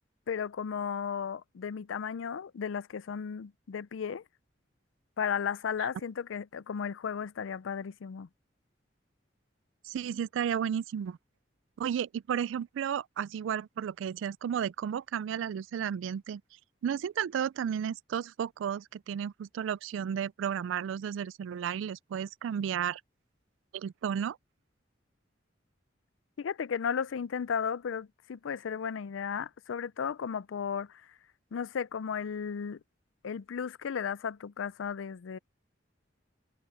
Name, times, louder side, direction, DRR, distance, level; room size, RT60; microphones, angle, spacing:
voice 1, 0.3-4.2 5.2-8.3 26.4-31.0 31.5-32.8 33.2-35.4, left 7 dB, 90° left, 0.4 m, -34 dB
voice 2, 9.8-11.2 11.8-16.4 16.8-23.0 23.7-24.4, right 8 dB, 85° right, 0.3 m, -33 dB
head